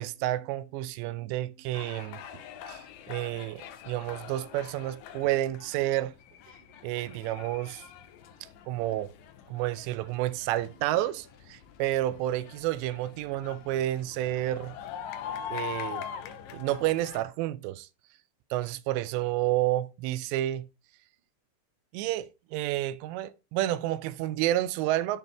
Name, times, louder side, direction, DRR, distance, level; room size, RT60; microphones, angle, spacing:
voice 1, 0.0-2.2 2.7-6.1 6.8-7.9 8.7-9.1 9.5-14.7 15.5-16.1 16.5-17.9 18.5-20.7 21.9-25.2, right 14 dB, 85° right, 2.7 m, -30 dB
sound 1, 1.7-17.2, left 9 dB, 80° left, 2.0 m, -43 dB
10.5 x 4.0 x 3.4 m
omnidirectional pair, 5.0 m